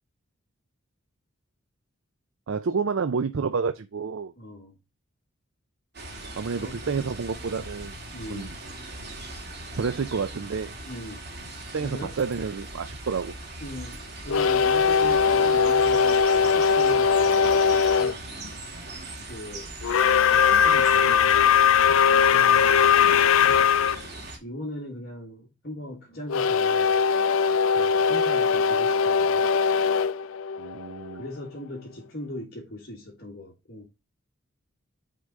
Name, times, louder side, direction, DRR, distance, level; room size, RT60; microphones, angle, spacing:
voice 1, 2.5-4.3 6.3-8.0 8.3-8.5 9.8-10.7 11.7-13.3 23.0-23.2 30.6-31.2, right 5 dB, 70° right, 0.5 m, -29 dB
voice 2, 4.4-4.8 6.6-6.8 8.1-8.6 10.8-11.2 11.8-12.2 13.6-18.3 19.2-19.7 20.3-23.7 24.4-27.0 27.7-29.5 31.1-33.9, left 1 dB, 50° left, 1.6 m, -40 dB
sound 1, 5.9-24.4, right 2 dB, 50° right, 2.2 m, -40 dB
sound 2, 14.3-18.2 19.8-24.0 26.3-31.2, left 6 dB, 80° left, 0.4 m, -20 dB
6.4 x 3.9 x 4.6 m
head